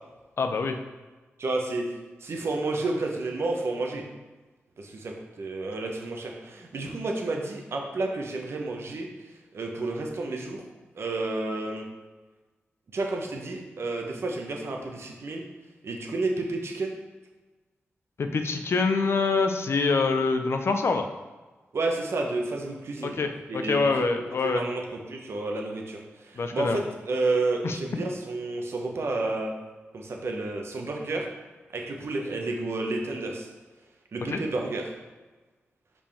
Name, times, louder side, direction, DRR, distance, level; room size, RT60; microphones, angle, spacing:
voice 1, 0.4-0.8 18.2-21.1 23.0-24.7 26.4-26.8 27.6-27.8 34.3-34.4, left 4 dB, 65° left, 6 dB, 0.6 m, -25 dB
voice 2, 1.4-1.8 2.2-4.0 4.8-9.1 9.5-10.6 10.9-11.9 12.9-15.4 15.8-17.0 21.7-23.2 23.5-24.0 24.4-24.8 25.1-29.5 29.9-31.2 31.7-33.5 34.1-34.9, right 2 dB, 70° right, 1 dB, 1.0 m, -30 dB
5.3 x 5.1 x 3.5 m, 1.2 s
cardioid pair, 45°, 5 cm